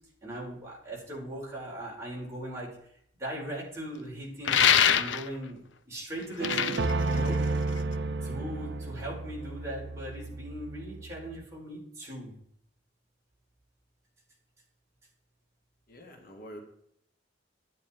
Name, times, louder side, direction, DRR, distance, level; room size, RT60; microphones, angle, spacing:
voice 1, 0.2-2.7 3.2-7.4 8.2-12.3, right 1 dB, 15° right, -5 dB, 5.3 m, -39 dB
sound 1, 4.4-5.4 6.2-7.9, left 8 dB, 85° left, 0.7 m, -24 dB
sound 2, 6.4-11.4, right 3 dB, 65° right, 0.7 m, -32 dB
voice 2, 15.9-16.6, equal, 50° left, 2 dB, 2.0 m, -46 dB
12.0 x 9.9 x 4.6 m, 0.68 s
head